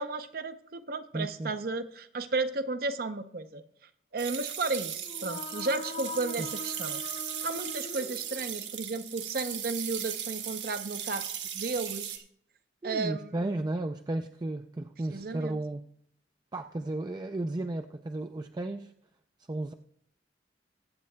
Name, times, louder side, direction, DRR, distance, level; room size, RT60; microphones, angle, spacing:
voice 1, 0.0-3.6 4.1-7.0 7.4-12.2 12.8-13.3 15.1-15.6, right 3 dB, 55° right, 10 dB, 0.7 m, -33 dB
voice 2, 1.1-1.5 6.4-6.5 12.8-15.9 16.5-18.9 19.4-19.7, right 2 dB, 25° right, 6 dB, 0.4 m, -34 dB
sound 1, 4.2-12.2, right 9 dB, 85° right, 1.4 m, -37 dB
sound 2, 4.9-8.8, left 3 dB, 45° left, 0.9 m, -42 dB
22.0 x 8.3 x 2.2 m, 0.68 s
head